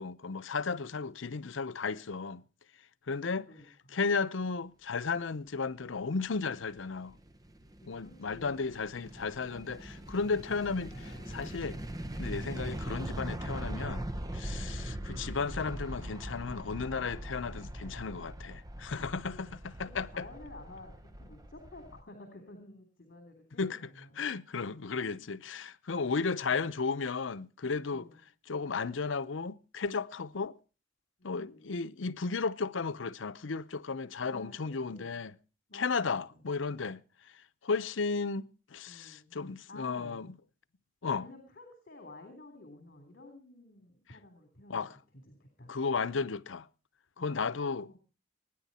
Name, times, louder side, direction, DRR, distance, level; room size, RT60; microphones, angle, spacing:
voice 1, 0.0-2.4 3.1-3.5 3.9-7.2 7.9-11.8 12.2-14.1 14.3-20.3 23.6-23.8 24.2-28.1 28.5-30.5 31.2-35.3 35.7-37.0 37.6-40.3 41.0-41.3 44.7-45.0 45.7-46.7 47.2-48.0, left 4 dB, 90° left, 0.7 m, -34 dB
voice 2, 3.2-4.0 7.8-8.6 14.6-15.0 19.3-24.2 27.9-28.2 31.2-31.7 34.2-35.2 35.7-36.4 38.9-39.4 39.7-40.2 41.1-44.9 45.3-45.7 47.2-47.4 47.8-48.0, left 2 dB, 50° left, 3.5 m, -52 dB
sound 1, 6.5-22.0, right 1 dB, 20° right, 0.8 m, -41 dB
sound 2, 9.1-17.0, equal, 25° left, 5.1 m, -57 dB
24.5 x 10.0 x 4.2 m
head